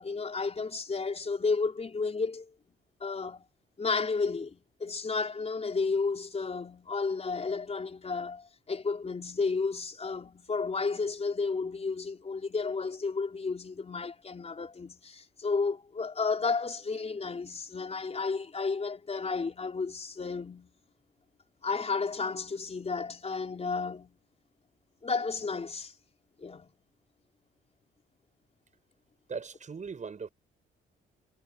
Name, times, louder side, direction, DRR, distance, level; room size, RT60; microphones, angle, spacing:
voice 1, 0.0-2.5 3.0-3.5 3.8-20.7 21.6-24.2 25.0-25.9 26.4-26.7, left 4 dB, 30° left, 4.7 m, -32 dB
voice 2, 29.3-30.3, right 5 dB, 40° right, 7.1 m, -39 dB
cardioid pair, 90°, 20 cm